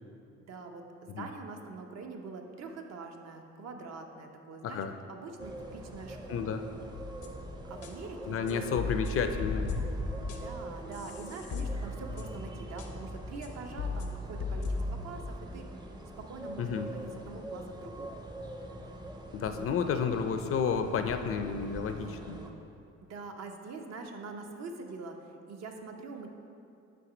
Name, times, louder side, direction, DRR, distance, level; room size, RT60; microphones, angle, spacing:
voice 1, 0.4-4.8 5.1-6.5 7.7-8.6 10.3-15.7 16.2-18.1 19.6-19.7 23.0-26.3, right 4 dB, 60° right, 4 dB, 0.7 m, -44 dB
voice 2, 4.6-4.9 6.3-6.6 8.2-9.8 16.6-16.9 19.3-22.4, left 6 dB, 50° left, 8 dB, 0.4 m, -31 dB
sound 1, 5.4-22.5, right 1 dB, 15° right, 0.5 m, -43 dB
sound 2, 6.9-7.4 7.8-7.9 8.5-10.6 10.9-12.5 12.8-12.9 13.4-13.5 13.8-15.2, left 3 dB, 85° left, 0.7 m, -37 dB
5.9 x 3.7 x 4.9 m, 2.6 s
cardioid pair, 90°, 30 cm